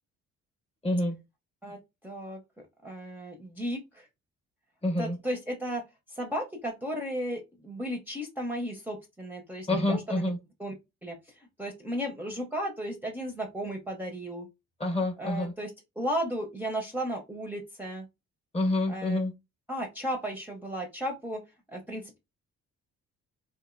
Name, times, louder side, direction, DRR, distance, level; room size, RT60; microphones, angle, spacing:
voice 1, 0.8-1.1 4.8-5.2 9.7-10.4 14.8-15.5 18.5-19.3, left 1 dB, 20° left, 0.8 m, -27 dB
voice 2, 1.6-2.4 2.8-4.1 5.0-10.3 10.6-10.7 11.0-14.5 15.2-15.7 16.0-18.1 18.9-19.2 19.7-21.4 21.7-22.2, equal, 5° right, 0.6 m, -35 dB
2.9 x 2.5 x 2.5 m
cardioid pair, 90°, 30 cm